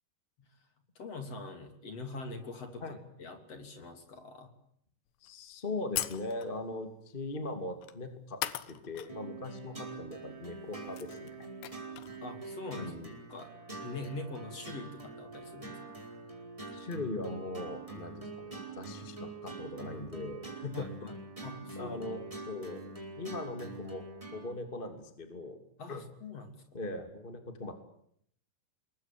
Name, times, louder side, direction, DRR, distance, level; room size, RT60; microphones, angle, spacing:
voice 1, 1.0-4.5 12.2-12.9 13.3-13.5 13.8-16.1 20.7-21.1 21.4-22.2 25.8-26.6, left 3 dB, 40° left, 7 dB, 3.9 m, -43 dB
voice 2, 5.2-11.5 12.7-13.1 16.7-21.1 21.8-22.2 22.5-22.8 23.2-24.0 24.3-25.6 25.9-26.0 26.7-27.7, left 2 dB, 15° left, 7 dB, 2.1 m, -40 dB
sound 1, 5.3-5.4 6.0-6.6 7.8-8.0 8.4-9.1 9.4-9.5 10.5-10.6 10.8-12.2, left 13 dB, 85° left, 3.4 m, -38 dB
sound 2, 9.1-24.5, right 3 dB, 10° right, 4.9 m, -45 dB
27.0 x 22.5 x 9.2 m, 0.69 s
omnidirectional pair, 4.8 m